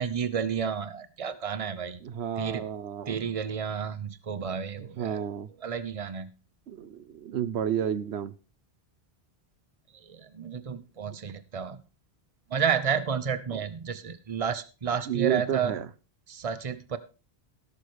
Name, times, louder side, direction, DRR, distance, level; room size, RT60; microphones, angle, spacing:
voice 1, 0.0-2.0 2.4-2.6 3.1-5.2 5.6-6.3 10.0-11.8 12.5-15.7 16.3-17.0, right 7 dB, 35° right, 0.9 m, -31 dB
voice 2, 2.0-3.2 4.8-5.5 6.7-8.3 11.1-11.2 13.5-13.6 15.1-15.9, right 9 dB, 85° right, 1.0 m, -31 dB
16.5 x 6.8 x 4.7 m
omnidirectional pair, 1.1 m